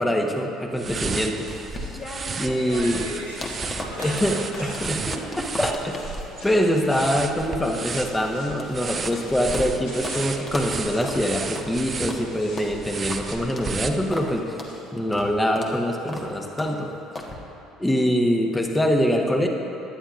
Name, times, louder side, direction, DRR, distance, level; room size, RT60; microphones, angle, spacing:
voice 1, 0.0-1.5 1.8-1.9 2.4-3.0 4.0-6.1 6.4-14.6 14.9-16.9 17.8-19.5, equal, 10° left, 2 dB, 1.3 m, -24 dB
sound 1, 0.7-14.4, right 5 dB, 35° right, 0.6 m, -33 dB
sound 2, 1.3-5.4 5.6-7.4 7.7-11.7 12.1-14.4 14.7-14.8, left 2 dB, 65° left, 2.7 m, -47 dB
sound 3, 1.5-9.7 10.0-10.2 10.5-10.7 11.0-11.2 11.5-11.7 12.1-12.2 12.6-12.7 13.1-13.2 13.6-13.7 14.1-14.3 14.6-14.7 15.1-15.3 15.6-15.7 16.1-16.3 16.6-16.7 17.1-17.3, left 2 dB, 30° left, 1.5 m, -37 dB
voice 2, 2.2-4.7, equal, 90° right, -7 dB, 2.3 m, -38 dB
17.5 x 11.0 x 2.6 m, 3.0 s
figure-of-eight pair, 55°, 0 cm